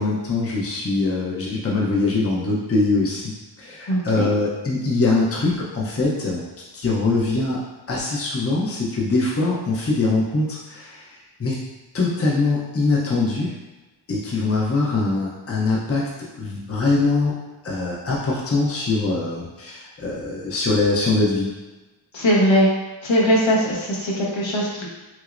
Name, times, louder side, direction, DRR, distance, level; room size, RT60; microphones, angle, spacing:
voice 1, 0.0-3.3 3.6-6.4 6.7-7.6 7.9-11.1 11.4-11.6 11.9-13.6 14.1-17.3 17.6-21.5 22.5-22.7, left 3 dB, 30° left, -4 dB, 0.7 m, -22 dB
voice 2, 3.9-4.3 22.1-22.7 23.0-24.9, equal, 65° left, -4 dB, 1.0 m, -20 dB
6.1 x 2.0 x 2.5 m, 1.1 s
wide cardioid pair, 105°, 49 cm